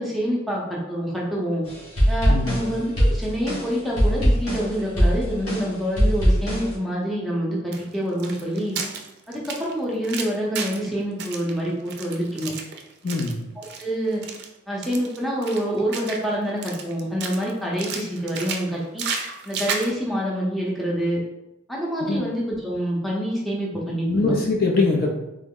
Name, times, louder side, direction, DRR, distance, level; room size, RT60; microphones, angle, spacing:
voice 1, 0.0-1.6 2.1-8.8 9.3-12.5 13.6-14.2 14.7-19.1 19.4-21.2 21.7-24.3, equal, ahead, -5 dB, 0.6 m, -26 dB
sound 1, 1.6-6.7, equal, 80° left, 1.4 m, -21 dB
voice 2, 2.3-2.6 13.0-13.4 22.0-22.3 24.1-25.1, left 3 dB, 45° left, 0 dB, 0.4 m, -22 dB
sound 2, 7.7-10.9 11.2-13.3 13.6-13.8 14.1-14.5 14.8-16.3 16.6-17.5 17.8-19.9, right 5 dB, 50° right, 0.4 m, -32 dB
3.6 x 2.0 x 3.6 m, 0.94 s
head